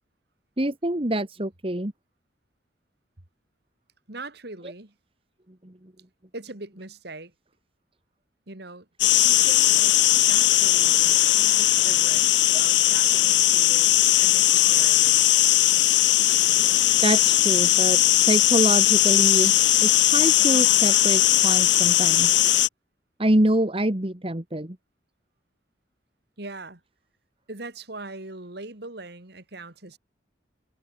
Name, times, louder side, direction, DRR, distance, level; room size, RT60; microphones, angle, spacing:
voice 1, 0.6-1.9 5.6-5.9 17.0-19.5 19.8-22.5 23.2-24.8, right 1 dB, 30° right, 1.7 m, -25 dB
voice 2, 4.1-4.9 6.3-7.3 8.5-13.9 14.2-15.3 26.4-26.8 27.5-30.0, right 2 dB, 55° right, 2.7 m, -41 dB
sound 1, 9.0-22.7, left 14 dB, 70° left, 0.8 m, -19 dB
head